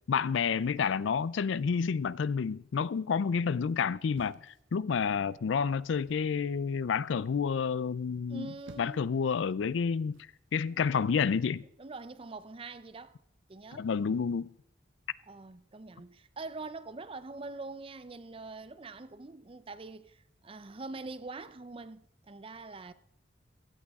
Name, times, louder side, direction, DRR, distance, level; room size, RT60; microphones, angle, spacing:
voice 1, 0.1-8.5 8.8-10.2 10.5-11.6 13.7-14.5, left 6 dB, 80° left, 0.4 m, -29 dB
sound 1, 4.1-5.2 5.9-6.3 8.3-9.2 10.1-10.4, right 2 dB, 85° right, 0.8 m, -55 dB
voice 2, 8.3-9.1 10.7-10.8 11.8-13.2 13.5-13.9 15.3-22.9, right 3 dB, 30° right, 0.5 m, -44 dB
16.5 x 12.5 x 3.6 m
head